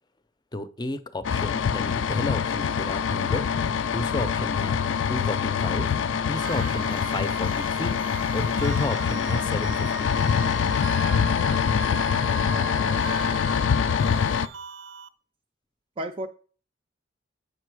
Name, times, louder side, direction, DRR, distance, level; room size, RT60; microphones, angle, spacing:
voice 1, 0.5-3.4 3.8-4.8 5.1-5.9 6.3-8.0 8.3-10.2, left 2 dB, 25° left, 0.5 m, -32 dB
sound 1, 1.2-14.5, left 7 dB, 80° left, 0.4 m, -25 dB
sound 2, 6.4-15.1, right 7 dB, 85° right, 0.6 m, -40 dB
voice 2, 12.3-13.7 16.0-16.3, right 1 dB, 30° right, 0.4 m, -38 dB
6.8 x 5.3 x 4.8 m
head